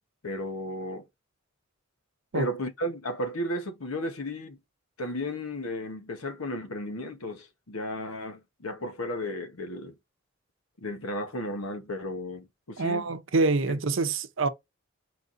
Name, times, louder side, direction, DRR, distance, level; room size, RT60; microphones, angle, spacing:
voice 1, 0.2-1.0 2.3-4.6 5.0-9.9 10.8-13.1 13.7-13.8, left 1 dB, 85° left, 1.0 m, -34 dB
voice 2, 12.8-14.5, right 3 dB, 70° right, 0.7 m, -26 dB
4.5 x 3.9 x 2.5 m
head